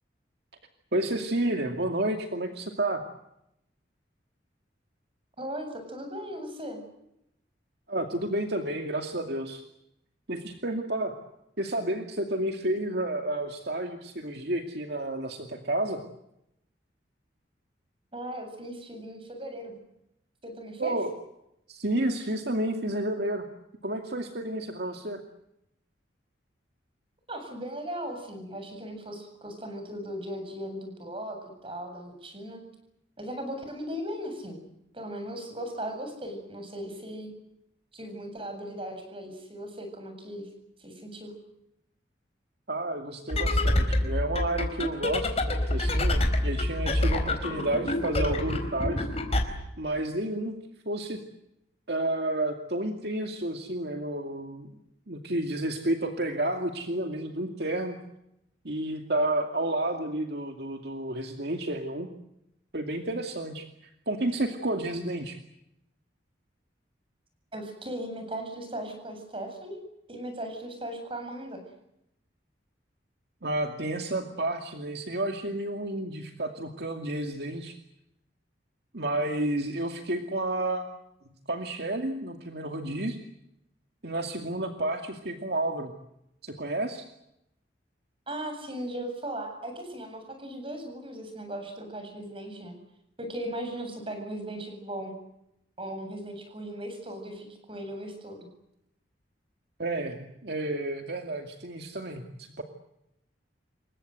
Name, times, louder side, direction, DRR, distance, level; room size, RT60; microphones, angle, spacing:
voice 1, 0.9-3.0 7.9-9.6 10.3-11.2 11.6-16.0 20.8-21.1 21.7-23.5 23.8-25.2 42.7-49.1 49.8-50.5 50.9-51.2 51.9-54.7 55.1-58.0 58.6-62.1 62.7-63.6 64.1-65.4 73.4-77.8 78.9-80.9 81.5-83.2 84.0-85.9 86.4-87.0 99.8-102.6, right 1 dB, 60° right, 4 dB, 2.5 m, -31 dB
voice 2, 5.4-6.8 18.1-19.7 20.4-20.9 27.3-32.6 33.2-34.6 34.9-37.3 37.9-40.5 40.8-41.3 67.5-69.8 70.1-71.6 88.3-92.8 93.2-95.1 95.8-98.5, right 1 dB, 30° right, 5 dB, 7.9 m, -37 dB
sound 1, 43.3-49.5, left 1 dB, 35° left, 4.4 m, -27 dB
28.0 x 23.5 x 7.9 m, 0.81 s
head